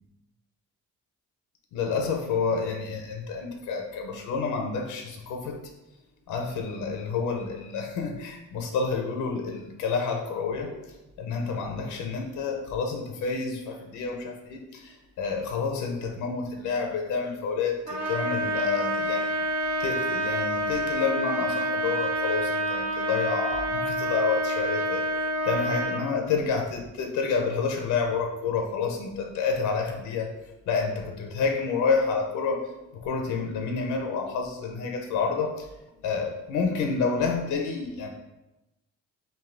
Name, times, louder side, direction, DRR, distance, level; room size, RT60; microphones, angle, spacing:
voice 1, 1.7-5.6 6.3-10.8 11.2-19.3 19.8-25.1 25.4-30.3 30.7-35.7 36.0-38.1, left 5 dB, 90° left, 3 dB, 0.6 m, -29 dB
Trumpet, 17.9-26.0, right 1 dB, 60° right, 1.0 m, -28 dB
3.4 x 2.6 x 3.7 m, 0.97 s
cardioid pair, 90°, 30 cm